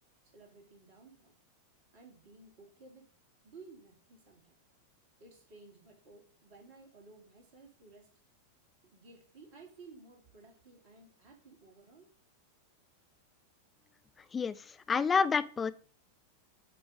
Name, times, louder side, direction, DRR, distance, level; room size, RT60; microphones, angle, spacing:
voice 1, 0.3-1.3 1.9-3.1 3.4-4.6 5.2-8.1 8.9-12.1, right 3 dB, 45° right, 1 dB, 2.6 m, -56 dB
voice 2, 14.3-15.7, left 5 dB, 20° left, 14 dB, 0.5 m, -29 dB
8.6 x 3.1 x 6.3 m, 0.41 s
figure-of-eight pair, 90°, 0 cm